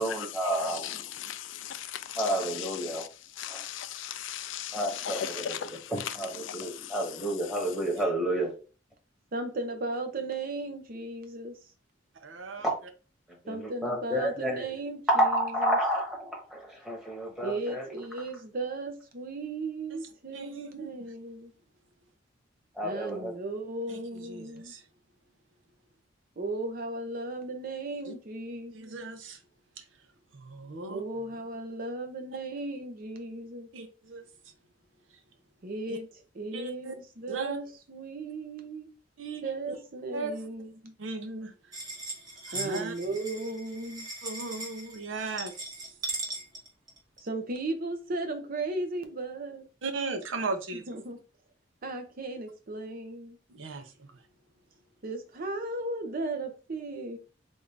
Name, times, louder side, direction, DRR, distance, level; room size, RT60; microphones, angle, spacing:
voice 1, 0.0-1.0 2.2-3.0 3.5-3.6 4.7-5.6 5.9-8.5 12.6-12.7 13.4-14.7 15.1-17.9 22.8-23.3, right 1 dB, 5° right, 1.2 m, -30 dB
voice 2, 0.8-2.2 3.4-5.7 6.5-6.6, left 10 dB, 80° left, 0.4 m, -37 dB
voice 3, 9.3-11.6 13.5-15.8 17.4-21.5 22.8-24.7 26.4-28.9 30.9-33.7 35.6-36.1 36.3-38.9 39.4-40.9 42.5-44.1 47.2-49.6 50.7-51.2 51.8-53.4 55.0-57.2, right 2 dB, 50° right, 0.7 m, -36 dB
voice 4, 12.1-12.7 19.9-20.0 20.3-21.0 23.9-24.8 28.1-28.2 28.7-29.4 29.8-29.9 30.3-31.0 33.7-34.3 35.9-36.0 36.5-37.0 37.3-37.6 39.2-39.7 40.1-40.4 41.0-41.7 42.4-42.9 44.2-45.9 49.8-50.8 53.5-54.2, right 3 dB, 90° right, 0.7 m, -37 dB
sound 1, 41.7-47.3, right 2 dB, 20° right, 0.9 m, -39 dB
3.5 x 2.6 x 3.3 m
head